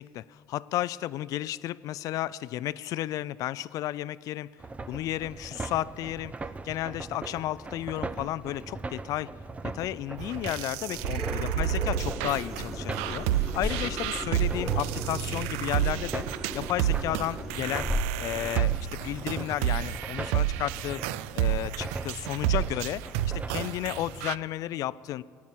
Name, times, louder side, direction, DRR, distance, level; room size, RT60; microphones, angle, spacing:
voice 1, 0.0-4.5 4.9-6.3 6.6-9.3 9.6-16.2 16.5-17.9 18.2-18.7 19.0-21.0 21.3-23.0 23.3-25.2, left 14 dB, 60° left, 19 dB, 0.4 m, -33 dB
sound 1, 4.6-24.2, right 3 dB, 20° right, 0.6 m, -40 dB
sound 2, 10.2-24.3, right 12 dB, 85° right, 0.4 m, -30 dB
sound 3, 10.9-18.0, equal, 5° right, 2.8 m, -36 dB
13.5 x 9.6 x 7.5 m, 2.1 s
supercardioid pair, 85°, 7 cm